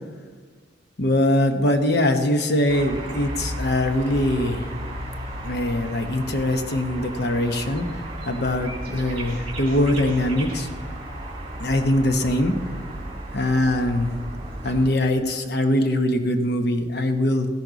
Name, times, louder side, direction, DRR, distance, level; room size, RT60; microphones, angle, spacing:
voice 1, 1.0-4.6 5.4-7.9 8.3-10.7 11.6-12.5 13.3-14.1 14.6-17.5, left 1 dB, 60° left, 6 dB, 1.0 m, -22 dB
sound 1, 2.7-14.9, right 1 dB, 30° right, 2.6 m, -34 dB
13.5 x 11.0 x 4.0 m, 1.5 s
head